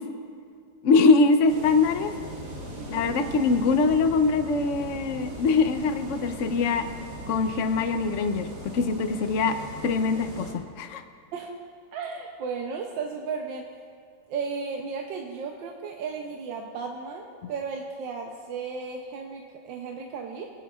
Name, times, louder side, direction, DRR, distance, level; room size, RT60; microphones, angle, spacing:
voice 1, 0.8-2.1 2.9-6.9 7.3-9.5 9.8-11.0, left 4 dB, 65° left, 8 dB, 0.7 m, -23 dB
sound 1, 1.5-10.5, right 1 dB, 55° right, 2.4 m, -39 dB
voice 2, 2.8-3.2 11.3-11.5 11.9-13.7 14.3-20.5, right 5 dB, 75° right, 1 dB, 1.4 m, -34 dB
22.5 x 9.2 x 2.4 m, 2.2 s
omnidirectional pair, 2.1 m